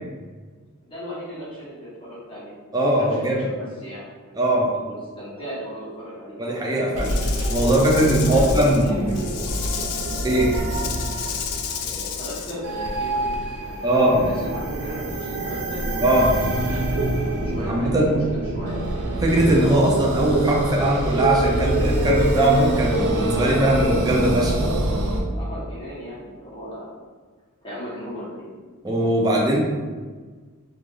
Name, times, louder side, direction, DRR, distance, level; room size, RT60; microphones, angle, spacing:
voice 1, 0.8-2.5 3.1-4.4 4.8-6.4 8.2-9.4 11.8-18.8 25.3-26.9 27.6-28.5, equal, 25° left, -10 dB, 1.0 m, -36 dB
voice 2, 2.7-3.5 4.4-4.7 6.4-7.1 7.5-9.0 10.2-10.6 13.8-14.2 16.0-16.3 17.7-18.1 19.2-24.6 28.8-29.6, right 1 dB, 15° right, -2 dB, 0.4 m, -20 dB
sound 1, 6.9-25.2, right 1 dB, 85° right, 0.5 m, -26 dB
Rattle / Rattle (instrument), 7.0-12.6, left 8 dB, 85° left, 0.3 m, -32 dB
3.2 x 2.5 x 2.3 m, 1.4 s
head